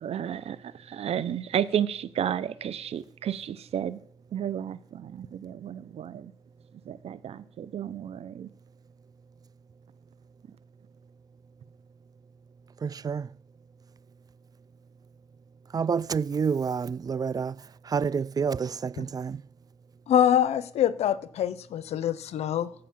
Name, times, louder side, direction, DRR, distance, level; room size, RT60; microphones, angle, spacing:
voice 1, 0.0-4.0 4.3-6.3 6.9-8.5, right 9 dB, 75° right, 0.7 m, -32 dB
voice 2, 12.8-13.3 15.7-19.4, right 6 dB, 35° right, 0.3 m, -29 dB
voice 3, 20.1-22.7, left 10 dB, 85° left, 0.6 m, -24 dB
14.5 x 5.0 x 7.2 m
cardioid pair, 60°, 11 cm